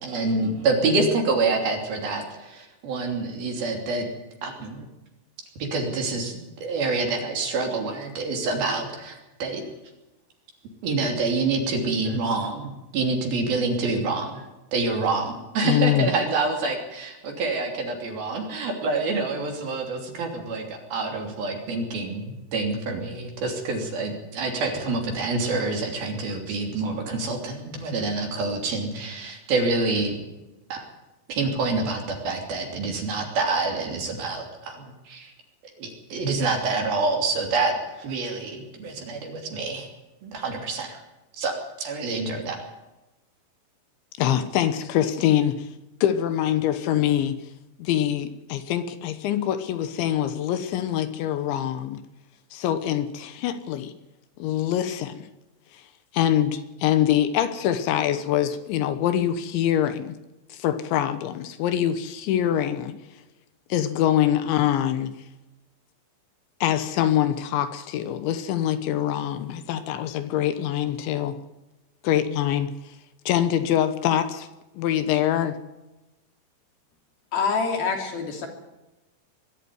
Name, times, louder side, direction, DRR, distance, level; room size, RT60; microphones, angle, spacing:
voice 1, 0.0-4.1 4.4-4.9 5.7-9.6 10.8-14.5 14.7-30.2 30.7-30.8 31.3-35.3 35.8-39.9 40.2-41.0 41.3-42.6, right 3 dB, 55° right, 3 dB, 4.6 m, -27 dB
voice 2, 15.6-16.1 44.2-45.7 46.0-47.4 47.8-52.0 52.5-53.9 54.4-55.3 55.7-55.8 56.1-60.1 60.5-63.0 63.7-65.1 66.6-71.4 72.0-73.0 73.3-74.5 74.8-75.6, left 11 dB, 75° left, 11 dB, 3.3 m, -24 dB
voice 3, 77.3-78.5, left 5 dB, 55° left, 3 dB, 4.5 m, -25 dB
22.5 x 12.5 x 9.7 m, 1.0 s
omnidirectional pair, 5.5 m